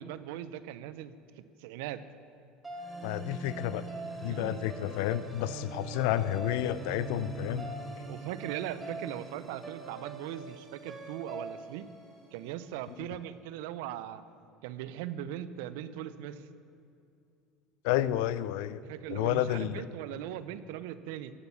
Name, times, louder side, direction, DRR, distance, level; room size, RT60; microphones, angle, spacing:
voice 1, 0.0-2.0 4.3-4.6 8.1-11.9 12.3-14.2 14.6-16.5 18.8-21.3, right 11 dB, 70° right, 14 dB, 0.6 m, -39 dB
sound 1, 2.6-12.9, right 3 dB, 15° right, 3.8 m, -42 dB
voice 2, 3.0-3.8 4.2-7.7 17.8-18.8 19.1-19.7, left 13 dB, 70° left, 17 dB, 0.5 m, -30 dB
16.5 x 8.1 x 6.9 m, 2.6 s
hypercardioid pair, 75°, 0 cm